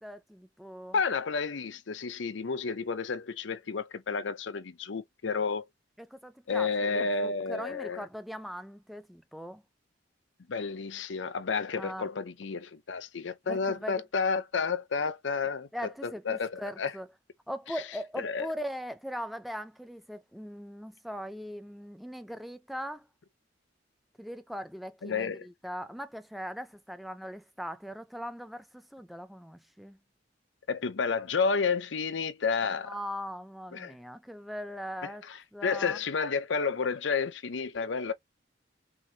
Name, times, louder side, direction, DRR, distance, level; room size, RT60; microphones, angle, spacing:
voice 1, 0.0-1.0 6.0-9.6 11.7-12.1 13.5-14.0 15.7-17.1 17.5-23.1 24.2-30.0 32.6-35.2 35.5-36.0, equal, ahead, 0.6 m, -40 dB
voice 2, 0.9-5.6 6.5-8.0 10.5-16.9 18.2-18.5 25.0-25.5 30.7-33.0 33.7-33.9 35.0-38.1, left 5 dB, 75° left, 0.6 m, -31 dB
5.9 x 2.7 x 2.7 m
head